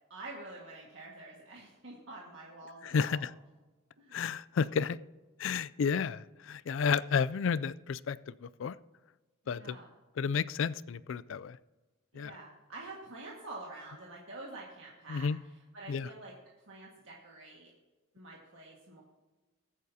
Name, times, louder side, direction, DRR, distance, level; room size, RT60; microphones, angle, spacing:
voice 1, 0.1-3.3 4.0-4.2 9.4-9.9 12.1-17.7 18.1-19.0, right 2 dB, 65° right, -3 dB, 1.8 m, -47 dB
voice 2, 2.8-3.3 4.1-5.0 5.4-8.8 9.5-9.8 10.2-11.6 12.2-12.3 15.1-15.4 15.9-16.1, left 6 dB, 65° left, 18 dB, 0.4 m, -31 dB
21.5 x 8.7 x 2.8 m, 1.2 s
head